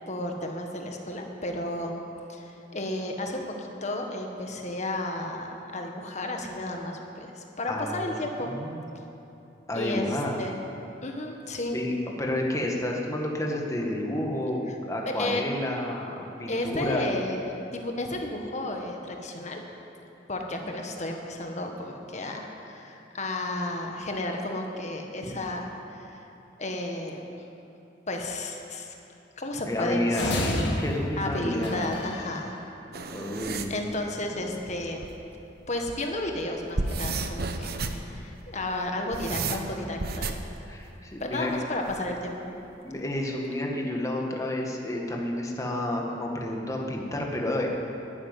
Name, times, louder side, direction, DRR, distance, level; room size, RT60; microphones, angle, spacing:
voice 1, 0.1-1.9 2.3-8.5 9.7-10.6 11.0-11.8 15.2-15.4 16.5-19.6 20.3-26.3 26.6-27.2 28.1-28.9 29.4-30.7 31.2-32.5 33.7-35.1 35.7-40.4 41.2-42.6, left 1 dB, 40° left, 2 dB, 1.6 m, -33 dB
voice 2, 7.7-8.1 8.4-8.8 9.7-10.4 11.7-11.9 12.2-17.1 29.6-31.9 33.1-33.7 40.7-41.5 42.8-47.7, left 1 dB, 15° left, -1 dB, 1.7 m, -30 dB
sound 1, 30.1-32.4, left 1 dB, 65° left, 2.2 m, -30 dB
sound 2, 32.9-33.8 35.0-35.1 35.6-36.1 36.6-38.1 38.9-40.5 41.9-42.3, right 3 dB, 55° right, 0.9 m, -32 dB
11.5 x 10.5 x 9.6 m, 2.9 s
head